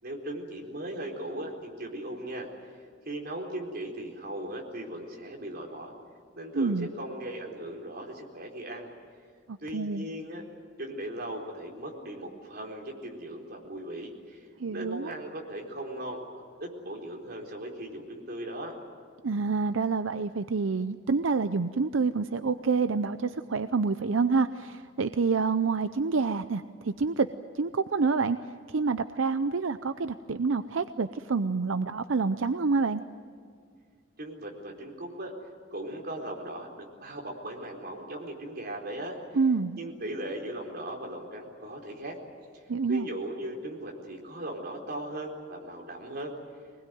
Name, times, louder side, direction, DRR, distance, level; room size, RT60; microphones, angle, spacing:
voice 1, 0.0-2.5 3.0-5.9 6.3-8.9 9.6-10.5 10.8-18.7 34.2-35.3 35.7-39.2 39.7-42.2 42.5-42.6 42.9-46.4, right 1 dB, 55° right, 0 dB, 4.2 m, -38 dB
voice 2, 6.5-6.9 9.5-10.1 14.6-15.1 19.2-27.3 27.5-28.4 28.7-33.0 39.3-39.8 42.7-43.1, right 4 dB, 85° right, 11 dB, 0.6 m, -27 dB
23.5 x 20.0 x 9.3 m, 2.1 s
head